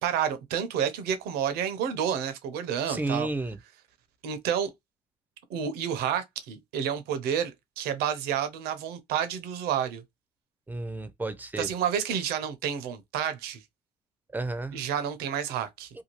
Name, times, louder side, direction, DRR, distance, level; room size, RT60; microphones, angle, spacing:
voice 1, 0.0-3.3 4.2-4.7 5.5-10.0 11.6-13.6 14.7-15.9, right 8 dB, 75° right, 0.7 m, -30 dB
voice 2, 2.9-3.6 10.7-11.7 14.3-14.8, right 2 dB, 10° right, 0.5 m, -32 dB
2.7 x 2.3 x 3.0 m
supercardioid pair, 75°, 16 cm